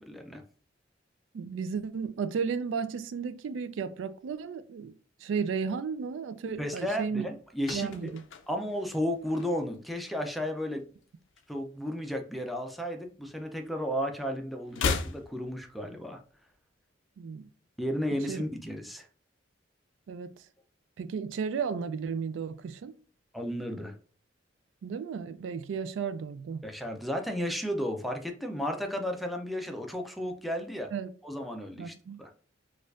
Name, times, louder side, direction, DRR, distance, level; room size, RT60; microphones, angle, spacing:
voice 1, 0.1-0.4 6.6-7.9 8.5-10.8 11.5-16.2 17.8-19.1 23.3-24.0 26.6-30.9 31.2-32.3, equal, ahead, 0.4 m, -33 dB
voice 2, 1.3-4.9 5.2-7.3 7.7-8.2 17.2-17.5 18.3-18.4 20.1-20.3 21.0-22.9 24.8-26.6 30.9-31.1 31.8-32.2, right 6 dB, 80° right, 0.3 m, -34 dB
sound 1, 7.3-9.9 10.2-10.5 10.8-12.3 12.5-13.9 14.1-16.3 16.5-16.6, left 5 dB, 80° left, 0.4 m, -37 dB
4.3 x 2.4 x 2.4 m
head